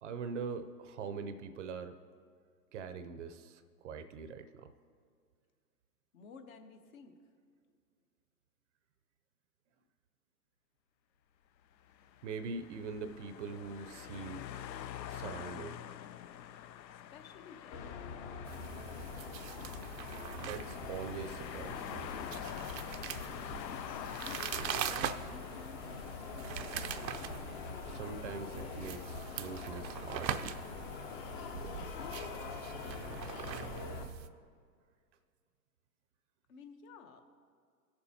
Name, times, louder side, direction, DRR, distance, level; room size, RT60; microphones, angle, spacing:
voice 1, 0.0-2.0 2.7-4.7 12.2-14.5 15.1-15.8 20.4-22.1 27.9-30.5, right 5 dB, 45° right, 10 dB, 0.6 m, -43 dB
voice 2, 6.1-7.2 16.9-18.0 24.2-25.8 26.2-26.7 32.0-32.4 36.5-37.2, left 5 dB, 55° left, 6 dB, 1.1 m, -52 dB
sound 1, 11.7-27.1, left 10 dB, 85° left, 0.6 m, -47 dB
sound 2, 17.7-34.0, left 6 dB, 35° left, 0.7 m, -44 dB
sound 3, 18.4-34.3, right 8 dB, 85° right, 0.6 m, -43 dB
18.0 x 7.0 x 2.8 m, 2.1 s
hypercardioid pair, 120°, 50 cm